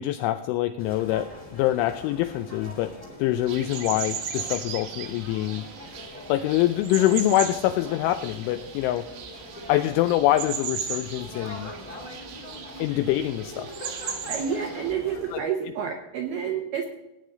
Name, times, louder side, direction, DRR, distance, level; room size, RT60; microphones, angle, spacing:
voice 1, 0.0-5.7 6.3-9.1 9.7-11.7 12.8-13.7 15.3-15.4, left 13 dB, 85° left, 9 dB, 2.7 m, -25 dB
sound 1, 0.8-15.4, equal, 50° left, 0.4 m, -42 dB
sound 2, 3.5-14.9, right 7 dB, 65° right, 2.2 m, -37 dB
voice 2, 14.3-16.8, right 7 dB, 80° right, 3 dB, 2.2 m, -29 dB
17.5 x 9.4 x 3.8 m, 0.93 s
omnidirectional pair, 6.0 m